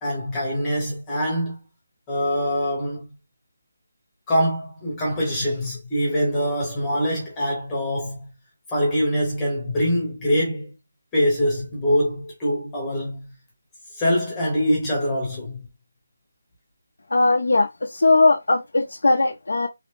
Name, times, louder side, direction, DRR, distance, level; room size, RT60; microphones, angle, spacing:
voice 1, 0.0-1.6 2.1-3.1 4.3-8.3 8.7-10.7 11.1-13.3 14.0-15.6, equal, 5° left, 0.8 m, -24 dB
voice 2, 17.1-19.7, left 3 dB, 85° left, 0.5 m, -19 dB
3.2 x 2.0 x 3.0 m
hypercardioid pair, 180°, 0 cm